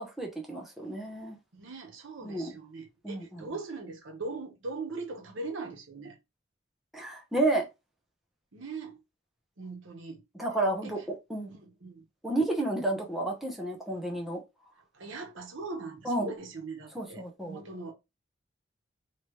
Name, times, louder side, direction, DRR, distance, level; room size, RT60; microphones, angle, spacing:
voice 1, 0.0-1.4 2.2-2.5 3.0-3.4 6.9-7.7 10.4-11.0 11.3-11.5 12.2-14.4 16.0-16.3 16.9-17.6, right 2 dB, ahead, 0.8 m, -31 dB
voice 2, 1.5-6.2 8.5-9.0 9.6-10.2 10.8-11.0 11.5-12.0 14.9-17.9, right 3 dB, 90° right, 1.0 m, -40 dB
3.3 x 2.9 x 3.0 m
head